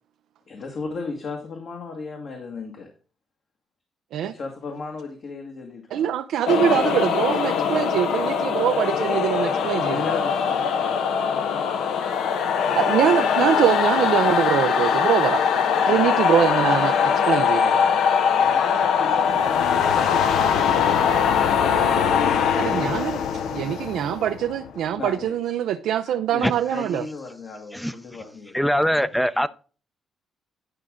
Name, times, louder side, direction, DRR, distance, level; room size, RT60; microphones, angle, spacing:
voice 1, 0.5-2.9 4.3-6.1 9.8-11.4 18.4-22.1 25.0-25.4 26.3-28.6, left 4 dB, 60° left, 1.7 m, -36 dB
voice 2, 5.9-10.1 12.7-15.4 15.9-17.8 22.6-23.2 23.5-27.0, right 10 dB, 80° right, 0.5 m, -23 dB
sound 1, 6.5-25.0, left 7 dB, 80° left, 0.9 m, -22 dB
voice 3, 28.5-29.5, equal, 5° left, 0.6 m, -22 dB
10.5 x 5.1 x 3.6 m
cardioid pair, 90°, 0 cm